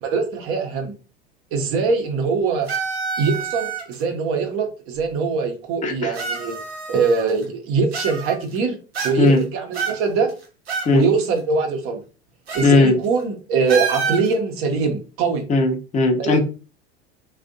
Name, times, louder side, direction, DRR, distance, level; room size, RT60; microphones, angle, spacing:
voice 1, 0.0-0.9 1.5-2.7 3.2-6.6 6.9-8.8 9.0-10.3 10.9-12.0 12.5-15.4 16.2-16.4, right 4 dB, 45° right, 4 dB, 1.0 m, -22 dB
sound 1, 2.7-4.0 5.0-5.1 6.1-7.4 7.9-8.6 8.9-9.4 9.7-10.9 11.2-11.3 12.5-12.7 13.0-13.2 13.7-14.3, right 5 dB, 75° right, 1.0 m, -28 dB
voice 2, 5.8-6.1 9.2-9.4 10.9-11.1 12.6-13.0 15.5-16.4, left 3 dB, 25° left, 4 dB, 0.7 m, -17 dB
3.4 x 2.5 x 2.6 m, 0.34 s
figure-of-eight pair, 80°, 31 cm